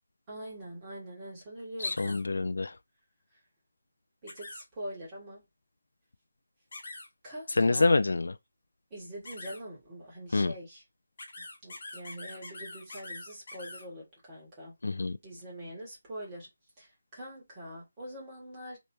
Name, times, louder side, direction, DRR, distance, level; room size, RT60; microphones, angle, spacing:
voice 1, 0.3-2.2 4.2-5.4 7.2-8.0 8.9-10.8 11.4-14.7 15.2-16.5 16.8-18.8, equal, 15° right, 1.7 m, -44 dB
voice 2, 1.8-2.7 7.6-8.3 10.3-10.5 14.8-15.2, left 3 dB, 70° left, 0.4 m, -26 dB
sound 1, 1.8-2.2 4.3-4.6 6.7-7.1 9.3-9.6 11.2-13.8, left 2 dB, 40° left, 1.1 m, -44 dB
3.3 x 3.0 x 2.7 m
figure-of-eight pair, 175°, 0 cm